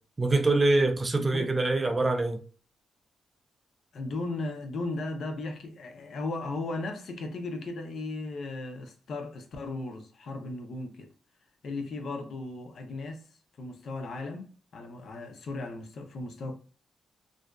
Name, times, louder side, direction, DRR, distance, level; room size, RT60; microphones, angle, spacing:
voice 1, 0.2-2.4, right 2 dB, 25° right, 0.4 m, -24 dB
voice 2, 1.1-1.5 3.9-11.1 11.6-13.2 13.6-16.6, left 2 dB, 60° left, 0.6 m, -36 dB
2.5 x 2.2 x 2.2 m
cardioid pair, 105°, 0 cm